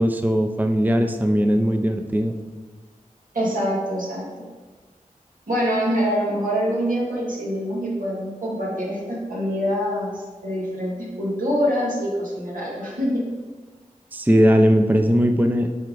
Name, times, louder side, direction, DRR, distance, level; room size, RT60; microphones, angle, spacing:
voice 1, 0.0-2.3 14.1-15.7, equal, 10° right, 5 dB, 0.5 m, -19 dB
voice 2, 3.3-4.2 5.5-13.2, equal, 85° right, -5 dB, 2.2 m, -25 dB
7.7 x 4.6 x 3.9 m, 1.3 s
wide cardioid pair, 55°, 14 cm